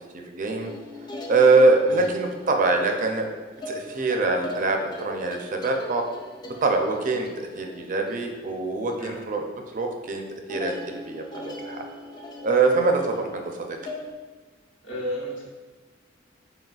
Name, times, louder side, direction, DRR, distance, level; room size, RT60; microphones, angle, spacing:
voice 1, 0.3-0.7 1.3-3.3 3.7-6.0 6.4-9.4 9.7-10.2 10.5-11.8 12.4-13.7, right 3 dB, 45° right, 3 dB, 0.5 m, -23 dB
sound 1, 0.6-9.4 9.7-10.1 10.5-14.1, left 2 dB, 25° left, 0.4 m, -40 dB
voice 2, 14.8-15.4, equal, 75° left, -5 dB, 1.2 m, -32 dB
4.1 x 3.9 x 2.3 m, 1.3 s
head